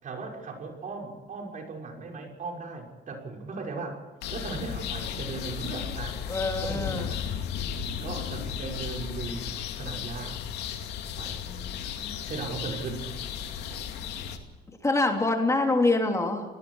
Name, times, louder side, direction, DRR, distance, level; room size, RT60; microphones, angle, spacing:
voice 1, 0.0-4.0 4.3-6.2 6.6-7.2 8.0-10.4 11.2-11.4 12.3-13.1, right 4 dB, 50° right, 1 dB, 6.1 m, -37 dB
sound 1, 4.2-14.4, left 8 dB, 80° left, 2.5 m, -35 dB
voice 2, 6.3-7.1 11.5-11.6 12.0-12.2 14.8-16.4, left 2 dB, 20° left, 2 dB, 3.1 m, -25 dB
29.5 x 19.0 x 4.9 m, 1.3 s
cardioid pair, 110°, 17 cm